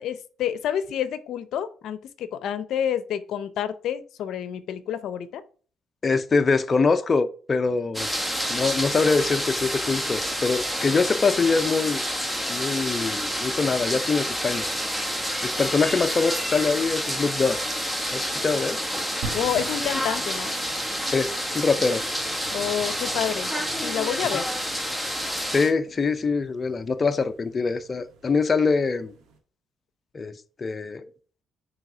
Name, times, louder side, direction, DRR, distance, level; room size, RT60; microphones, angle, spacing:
voice 1, 0.0-5.4 19.3-20.5 22.5-23.5 23.8-24.4, left 9 dB, 75° left, 0.6 m, -29 dB
voice 2, 6.0-8.1 8.5-12.0 12.5-14.7 15.4-17.6 18.1-18.8 21.1-22.1 25.5-29.1 30.1-31.1, left 4 dB, 35° left, 0.6 m, -24 dB
sound 1, 7.9-25.7, equal, 5° right, 1.4 m, -28 dB
sound 2, 19.2-29.4, right 3 dB, 90° right, 1.6 m, -44 dB
8.9 x 3.5 x 4.9 m
cardioid pair, 90°, 0 cm